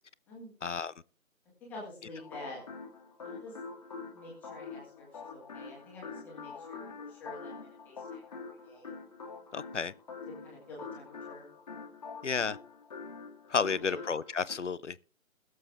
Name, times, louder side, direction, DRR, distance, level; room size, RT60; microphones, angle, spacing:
voice 1, 0.6-0.9 9.5-9.9 12.2-12.6 13.5-15.0, left 5 dB, 60° left, 0.7 m, -31 dB
voice 2, 1.6-2.6 3.2-3.5 4.1-8.9 10.4-11.5 13.6-13.9, left 2 dB, 5° left, 2.1 m, -48 dB
sound 1, 2.2-14.6, left 4 dB, 30° left, 2.0 m, -45 dB
21.0 x 7.5 x 3.5 m
figure-of-eight pair, 160°, 42 cm